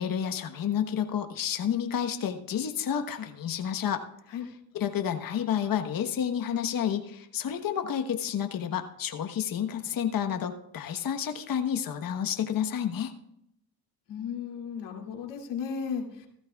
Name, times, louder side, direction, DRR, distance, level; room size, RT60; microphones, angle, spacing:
voice 1, 0.0-4.0 4.7-13.1, left 9 dB, 50° left, 6 dB, 1.3 m, -30 dB
voice 2, 14.1-16.3, left 6 dB, 65° left, 1 dB, 2.7 m, -35 dB
15.5 x 13.0 x 2.4 m, 0.77 s
supercardioid pair, 70°, 45 cm